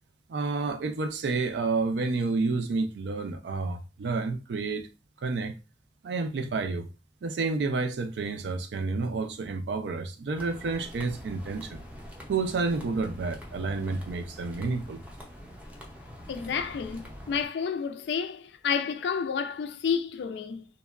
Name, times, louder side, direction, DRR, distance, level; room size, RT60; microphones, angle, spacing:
voice 1, 0.3-4.9 5.2-5.5 6.0-6.9 7.2-11.8 12.3-15.0, right 3 dB, 70° right, 0.4 m, -30 dB
sound 1, 10.3-17.5, equal, 10° right, 0.5 m, -45 dB
voice 2, 16.3-20.7, left 6 dB, 70° left, 0.3 m, -30 dB
2.9 x 2.2 x 2.3 m
head